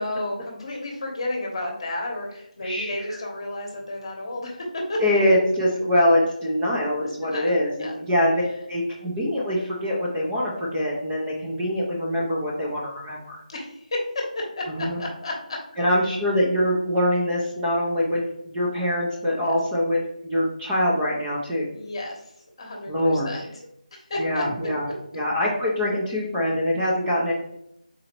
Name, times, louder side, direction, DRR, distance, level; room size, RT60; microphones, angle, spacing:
voice 1, 0.0-5.0 7.2-7.9 13.5-14.6 15.0-15.6 21.7-22.2 22.6-23.5 24.1-24.4, left 1 dB, 35° left, 0 dB, 1.0 m, -31 dB
voice 2, 2.6-3.2 5.0-13.4 14.7-15.0 15.8-21.7 22.9-23.4 24.2-27.3, left 1 dB, 10° right, -5 dB, 0.5 m, -24 dB
4.1 x 3.9 x 2.9 m, 0.78 s
figure-of-eight pair, 170°, 5 cm